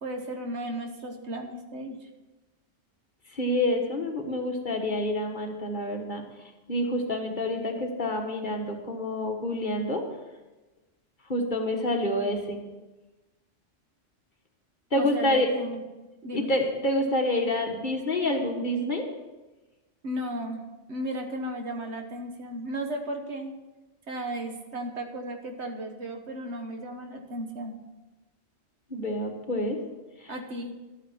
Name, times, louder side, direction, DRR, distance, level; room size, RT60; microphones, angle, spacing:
voice 1, 0.0-2.1 14.9-15.8 16.2-16.5 20.0-20.6 20.9-23.5 24.1-27.7 30.3-30.7, right 1 dB, 70° right, 4 dB, 1.6 m, -35 dB
voice 2, 3.3-6.2 6.7-10.0 11.3-12.6 14.9-15.5 16.3-19.0 28.9-29.8 30.2-30.3, left 1 dB, 40° left, 2 dB, 1.6 m, -27 dB
12.5 x 9.2 x 5.7 m, 1.1 s
omnidirectional pair, 1.2 m